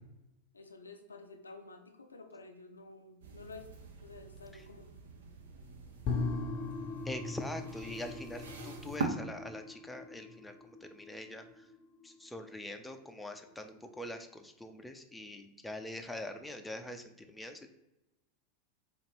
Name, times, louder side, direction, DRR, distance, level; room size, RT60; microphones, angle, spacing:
voice 1, 0.5-3.7 4.0-4.9, left 3 dB, 90° left, 5 dB, 0.5 m, -51 dB
sound 1, 3.2-9.1, right 4 dB, 75° right, 0.5 m, -44 dB
sound 2, 6.0-13.2 13.5-13.6, left 4 dB, 45° left, 0.6 m, -40 dB
voice 2, 7.1-10.6 10.8-11.5 12.0-17.7, left 1 dB, 5° left, 6 dB, 0.4 m, -44 dB
4.1 x 2.5 x 3.1 m, 0.92 s
hypercardioid pair, 90°, 0 cm